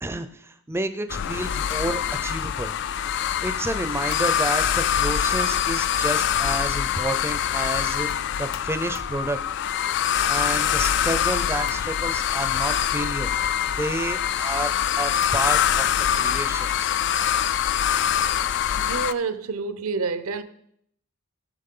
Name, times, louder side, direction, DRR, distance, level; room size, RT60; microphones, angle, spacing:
voice 1, 0.0-2.7 3.4-9.4 10.3-14.7 15.0-15.9 16.1-16.9, right 2 dB, 10° right, 0.5 m, -30 dB
sound 1, 1.1-19.1, left 9 dB, 55° left, 0.4 m, -24 dB
voice 2, 18.7-20.4, right 4 dB, 65° right, 0.7 m, -28 dB
17.5 x 6.2 x 3.8 m
head